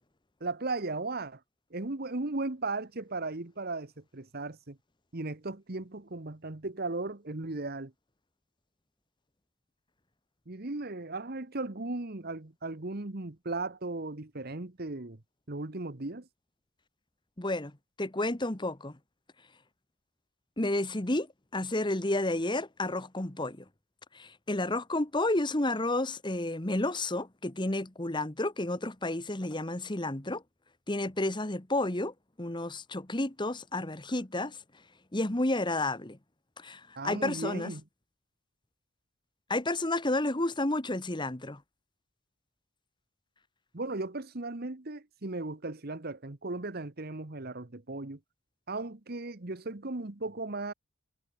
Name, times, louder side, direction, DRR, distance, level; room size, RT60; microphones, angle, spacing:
voice 1, 0.4-1.4 1.7-4.8 5.1-7.9 10.5-15.2 15.5-16.3 37.0-37.8 43.7-48.2 48.7-50.7, right 2 dB, 45° right, 1.2 m, -36 dB
voice 2, 17.4-17.7 18.0-19.0 20.6-21.3 21.5-23.6 24.1-30.4 30.9-34.6 35.1-36.2 36.6-37.7 39.5-41.6, left 2 dB, 20° left, 1.3 m, -31 dB
head